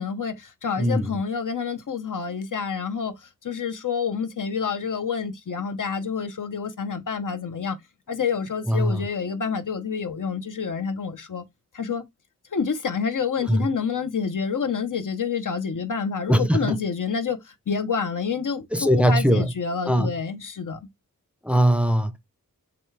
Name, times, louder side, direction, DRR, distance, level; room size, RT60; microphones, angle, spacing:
voice 1, 0.0-7.8 8.1-11.4 11.7-12.0 12.5-20.8, left 6 dB, 65° left, 0.8 m, -28 dB
voice 2, 0.8-1.1 8.7-9.0 13.5-13.7 16.3-16.6 18.7-19.5 19.9-20.1 21.4-22.2, equal, 5° right, 0.6 m, -20 dB
6.8 x 2.3 x 3.3 m
wide cardioid pair, 75°, 34 cm